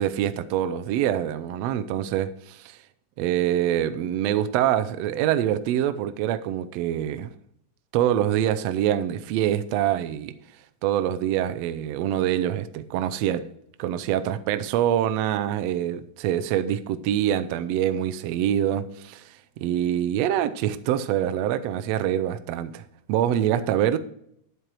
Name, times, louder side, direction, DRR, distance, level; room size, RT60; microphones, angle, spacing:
voice 1, 0.0-2.8 3.2-7.3 7.9-10.3 10.8-13.5 13.8-19.2 19.6-22.8 23.1-24.0, right 11 dB, 80° right, 1.6 m, -25 dB
11.0 x 8.1 x 4.6 m
omnidirectional pair, 3.4 m